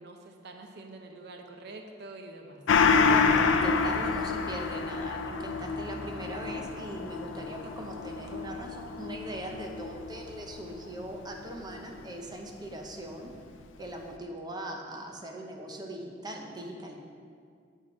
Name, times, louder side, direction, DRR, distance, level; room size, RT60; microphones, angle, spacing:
voice 1, 0.0-2.6, right 2 dB, 60° right, 4 dB, 0.6 m, -46 dB
Gong, 2.7-11.6 12.0-12.1, left 5 dB, 80° left, 0.5 m, -28 dB
voice 2, 3.0-13.3 13.8-17.0, right 1 dB, 20° right, 1 dB, 0.7 m, -40 dB
9.0 x 4.5 x 5.1 m, 2.2 s
head